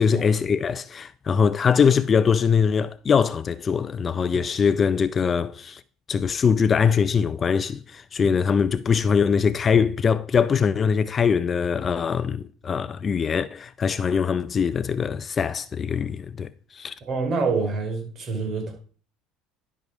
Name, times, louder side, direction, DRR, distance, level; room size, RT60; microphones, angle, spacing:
voice 1, 0.0-5.8 6.1-16.9, left 6 dB, 30° left, 0.4 m, -22 dB
voice 2, 17.0-18.7, right 4 dB, 40° right, 3.3 m, -26 dB
11.0 x 5.6 x 4.9 m
supercardioid pair, 110°, 0 cm